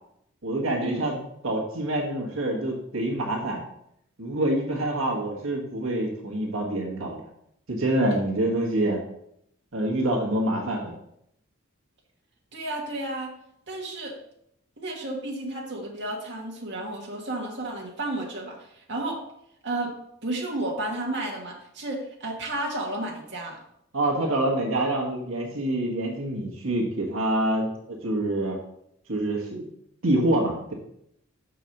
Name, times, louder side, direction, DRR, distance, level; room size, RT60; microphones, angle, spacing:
voice 1, 0.4-1.1 1.4-3.6 4.2-7.2 7.7-9.0 9.7-10.9 23.9-28.6 29.1-29.7 30.0-30.7, right 1 dB, 75° right, -1 dB, 1.6 m, -26 dB
voice 2, 12.5-13.3 13.7-14.1 14.8-19.2 19.6-19.9 20.2-23.6, right 2 dB, 55° right, -2 dB, 1.6 m, -32 dB
5.8 x 4.7 x 6.5 m, 0.74 s
head